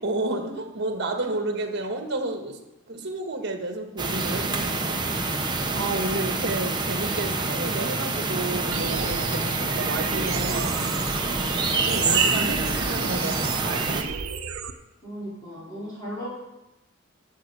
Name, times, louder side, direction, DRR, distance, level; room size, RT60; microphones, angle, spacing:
voice 1, 0.0-2.6 2.9-10.7 11.8-14.1, right 2 dB, 55° right, 4 dB, 1.5 m, -31 dB
sound 1, 4.0-14.0, right 3 dB, 20° right, 1.0 m, -26 dB
sound 2, 8.7-14.7, right 6 dB, 80° right, 0.8 m, -32 dB
voice 2, 15.0-16.3, equal, 20° left, -8 dB, 3.9 m, -36 dB
9.0 x 8.4 x 6.8 m, 0.98 s
head